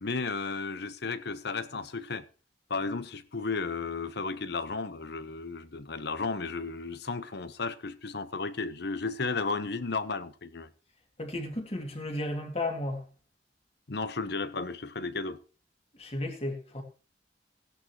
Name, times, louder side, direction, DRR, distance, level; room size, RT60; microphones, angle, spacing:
voice 1, 0.0-2.2 2.7-10.7 13.9-15.4, left 4 dB, 65° left, 0.9 m, -34 dB
voice 2, 11.2-13.0 16.0-16.8, left 1 dB, 35° left, 2.4 m, -33 dB
16.5 x 10.5 x 3.0 m
head